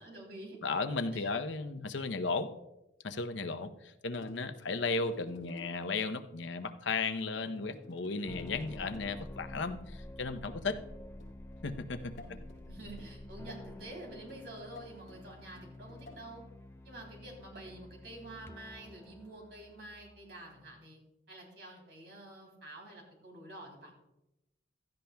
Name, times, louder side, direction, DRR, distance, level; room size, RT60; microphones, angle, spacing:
voice 1, 0.0-0.6 1.1-1.3 12.2-16.4 16.8-21.0 21.3-23.9, right 2 dB, 65° right, 0 dB, 3.3 m, -49 dB
voice 2, 0.6-2.5 3.0-10.8 11.6-12.1, left 4 dB, 85° left, 9 dB, 0.8 m, -35 dB
sound 1, 4.1-5.9 7.3-9.4 11.2-16.3 17.7-18.0 19.0-19.3, left 1 dB, 45° left, 4.6 m, -55 dB
sound 2, 7.5-20.8, left 1 dB, 15° left, 0.3 m, -49 dB
16.0 x 13.0 x 2.3 m, 0.91 s
head